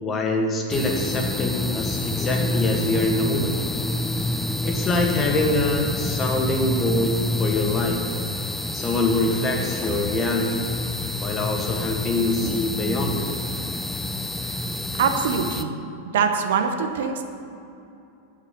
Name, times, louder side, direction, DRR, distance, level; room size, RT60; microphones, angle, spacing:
voice 1, 0.0-3.6 4.6-8.0 8.7-10.7 11.2-13.3, left 2 dB, 25° left, 2 dB, 1.8 m, -24 dB
sound 1, 0.7-15.6, left 1 dB, 5° left, 0.6 m, -28 dB
voice 2, 15.0-15.8 16.1-17.3, right 6 dB, 55° right, 6 dB, 1.0 m, -23 dB
8.7 x 8.2 x 9.2 m, 2.7 s
figure-of-eight pair, 90°, 0 cm